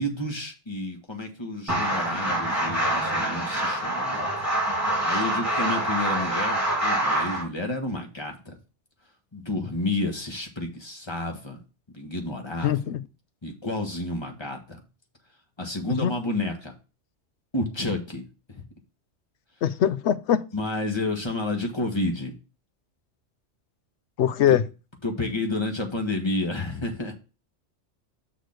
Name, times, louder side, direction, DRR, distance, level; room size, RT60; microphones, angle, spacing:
voice 1, 0.0-4.3 5.0-8.6 9.3-11.6 11.9-12.7 13.4-14.8 15.6-16.7 17.5-18.6 20.5-22.3 25.0-27.1, left 2 dB, 25° left, 1.4 m, -30 dB
sound 1, 1.7-7.4, right 1 dB, 15° right, 3.1 m, -26 dB
voice 2, 12.6-13.0 16.0-16.2 19.6-20.4 24.2-24.6, left 10 dB, 75° left, 0.9 m, -22 dB
6.4 x 4.1 x 6.4 m
omnidirectional pair, 1.2 m